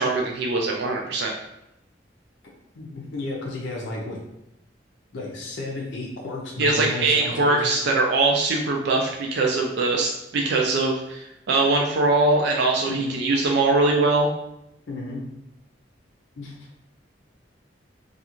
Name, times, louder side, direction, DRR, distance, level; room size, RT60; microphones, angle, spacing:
voice 1, 0.0-1.3 6.6-14.3, right 3 dB, 65° right, 1 dB, 0.3 m, -22 dB
voice 2, 2.8-4.2 5.1-7.7 12.9-13.2 14.9-15.2 16.4-16.5, left 2 dB, 75° left, -2 dB, 0.5 m, -33 dB
2.4 x 2.3 x 2.9 m, 0.84 s
head